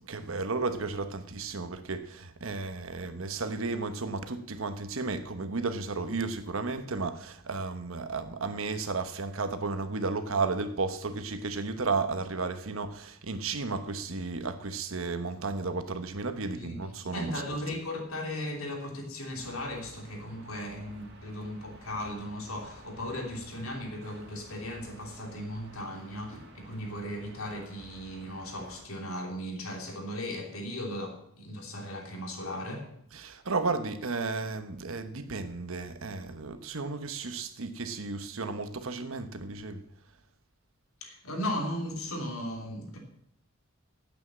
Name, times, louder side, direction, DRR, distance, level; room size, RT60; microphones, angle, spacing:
voice 1, 0.1-17.3 33.1-39.8, right 3 dB, 70° right, 1.1 m, -33 dB
voice 2, 16.6-32.9 41.0-43.0, left 1 dB, 85° left, 3.0 m, -37 dB
sound 1, 19.3-28.8, right 1 dB, 55° right, 2.3 m, -52 dB
9.7 x 8.4 x 7.5 m
head